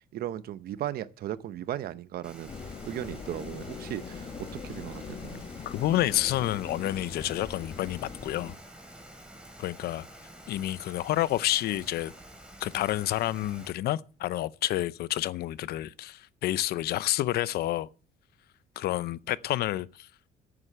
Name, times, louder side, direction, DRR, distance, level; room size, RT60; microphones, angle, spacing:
voice 1, 0.1-2.5 2.8-5.4, right 12 dB, 65° right, 0.8 m, -36 dB
Rain, 2.2-13.7, right 1 dB, 5° right, 4.2 m, -49 dB
sound 1, 2.5-8.6, left 5 dB, 30° left, 1.1 m, -41 dB
voice 2, 5.7-8.5 9.6-10.1 10.5-12.1 12.6-17.9 18.8-20.1, left 14 dB, 70° left, 0.6 m, -29 dB
10.0 x 8.9 x 7.5 m
cardioid pair, 110°, 17 cm